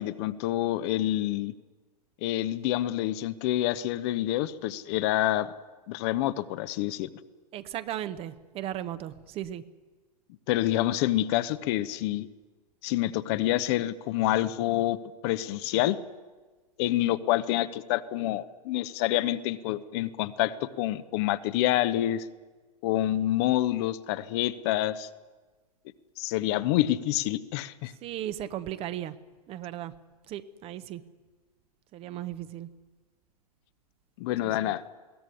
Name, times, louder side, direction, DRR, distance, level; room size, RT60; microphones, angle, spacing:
voice 1, 0.0-1.5 2.2-5.5 5.9-7.1 10.5-12.3 12.8-16.0 16.8-22.3 22.8-25.1 26.2-27.9 34.2-34.8, left 14 dB, 40° left, 13 dB, 0.9 m, -27 dB
voice 2, 7.5-9.6 28.0-29.1 29.5-29.9 30.3-31.0 31.9-32.7 34.4-34.7, right 12 dB, 30° right, 13 dB, 1.0 m, -36 dB
21.5 x 17.0 x 9.9 m, 1.3 s
figure-of-eight pair, 100°, 20 cm